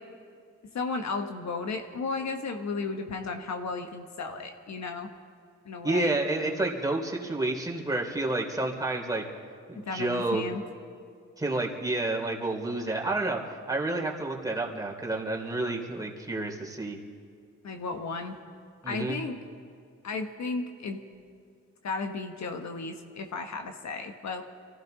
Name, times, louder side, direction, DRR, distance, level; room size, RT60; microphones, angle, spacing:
voice 1, 0.7-5.1 5.6-6.1 9.8-10.6 17.6-18.4 18.9-19.4 20.0-21.0 21.8-24.4, left 4 dB, 60° left, 5 dB, 1.2 m, -34 dB
voice 2, 5.8-9.2 9.7-10.4 11.4-17.0 18.8-19.2, right 2 dB, 10° right, -1 dB, 3.2 m, -30 dB
23.5 x 15.0 x 4.0 m, 2.2 s
supercardioid pair, 50°, 30 cm